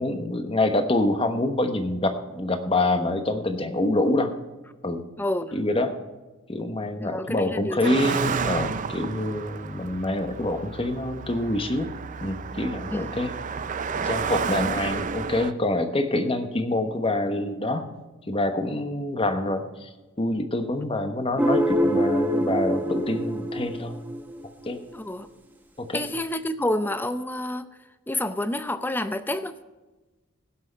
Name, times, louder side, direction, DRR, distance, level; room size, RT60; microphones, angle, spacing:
voice 1, 0.0-4.3 4.8-5.0 5.5-5.9 6.5-11.9 12.2-13.3 14.0-17.8 18.3-19.9 20.2-24.0 24.6-24.8 25.8-26.0, left 1 dB, 25° left, 7 dB, 1.1 m, -26 dB
voice 2, 5.2-5.7 7.0-8.2 12.9-13.2 14.5-14.7 24.9-25.3 25.9-27.7 28.1-29.6, left 1 dB, 10° left, 11 dB, 0.5 m, -29 dB
Car passing by, 7.8-15.5, right 5 dB, 35° right, 0.4 m, -31 dB
sound 1, 21.4-24.7, equal, 10° right, 1.0 m, -25 dB
17.0 x 6.2 x 4.5 m, 1.2 s
head